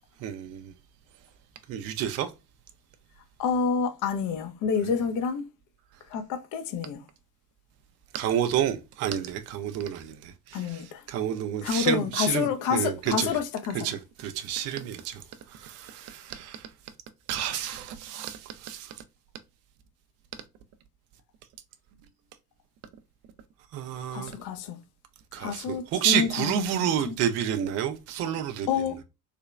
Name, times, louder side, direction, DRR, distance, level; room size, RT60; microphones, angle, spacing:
voice 1, 0.2-0.7 1.7-2.3 8.1-13.4 13.8-16.7 17.3-19.0 23.7-24.3 25.3-28.7, right 9 dB, 35° right, 0.5 m, -30 dB
voice 2, 3.4-5.4 6.1-7.0 10.5-11.0 11.6-13.8 24.1-24.8 25.4-27.1 28.7-29.0, left 6 dB, 40° left, 0.6 m, -28 dB
3.3 x 2.8 x 2.3 m
figure-of-eight pair, 55°, 48 cm